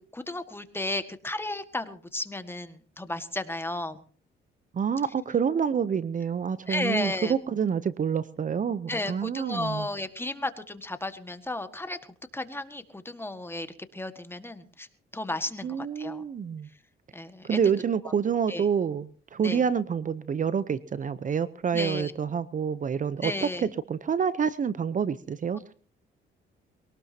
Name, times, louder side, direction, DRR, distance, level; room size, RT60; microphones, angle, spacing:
voice 1, 0.0-4.0 6.7-7.3 8.9-12.0 12.3-13.7 13.9-14.9 15.1-16.2 17.1-17.6 18.0-18.1 18.5-18.6 19.4-19.6 21.7-22.1 23.2-23.7, left 2 dB, 10° left, 9 dB, 1.7 m, -33 dB
voice 2, 4.7-9.9 15.6-16.7 17.4-23.3 23.6-25.7, right 7 dB, 40° right, 15 dB, 0.7 m, -28 dB
22.5 x 18.5 x 2.8 m, 0.42 s
cardioid pair, 90°, 20 cm